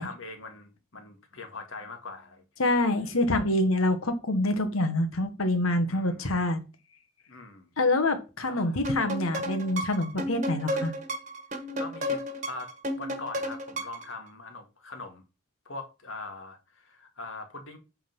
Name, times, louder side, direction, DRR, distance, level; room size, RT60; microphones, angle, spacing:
voice 1, 0.0-2.4 3.0-3.1 5.9-6.3 7.3-7.7 8.5-8.8 11.8-15.2 15.7-17.8, left 3 dB, 70° left, 1.8 m, -42 dB
voice 2, 2.6-6.6 7.8-10.9, left 1 dB, 90° left, 1.3 m, -26 dB
sound 1, 8.8-14.1, equal, 35° right, 1.3 m, -33 dB
8.6 x 3.8 x 5.4 m
head